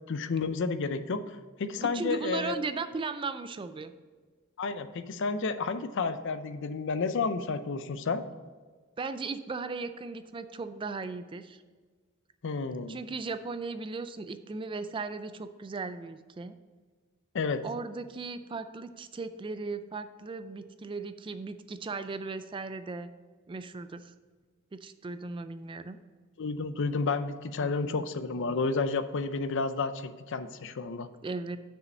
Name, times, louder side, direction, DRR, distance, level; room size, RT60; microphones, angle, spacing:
voice 1, 0.1-2.5 4.6-8.2 12.4-13.0 17.3-17.6 26.4-31.1, left 4 dB, 60° left, 11 dB, 0.5 m, -31 dB
voice 2, 1.8-3.9 9.0-11.6 12.9-16.5 17.6-23.1 23.5-24.1 24.7-26.0 27.6-28.0 31.2-31.6, right 4 dB, 25° right, 11 dB, 0.3 m, -37 dB
6.4 x 5.0 x 6.3 m, 1.4 s
head